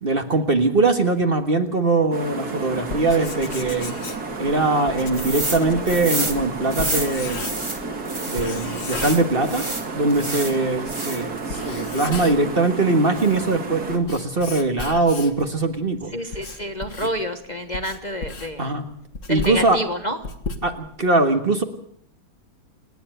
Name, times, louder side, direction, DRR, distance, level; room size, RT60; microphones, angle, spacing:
voice 1, 0.0-3.9 4.4-7.4 8.3-9.7 10.0-16.1 18.6-18.8 19.3-19.8 20.6-21.6, right 3 dB, 35° right, 7 dB, 1.7 m, -21 dB
sound 1, 2.1-14.0, right 4 dB, 60° right, 2.9 m, -31 dB
Writing, 2.9-7.8 8.4-9.8 10.1-10.2 10.9-11.0 11.4-12.6 13.0-15.5 16.0-21.1, left 3 dB, 45° left, 1.9 m, -35 dB
sound 2, 5.1-5.6 5.9-8.4 8.8-10.6 10.9-11.4, right 1 dB, 15° right, 2.0 m, -29 dB
voice 2, 16.1-18.7 19.3-20.2, equal, 30° left, 6 dB, 1.2 m, -28 dB
27.5 x 10.5 x 9.1 m, 0.67 s
omnidirectional pair, 1.8 m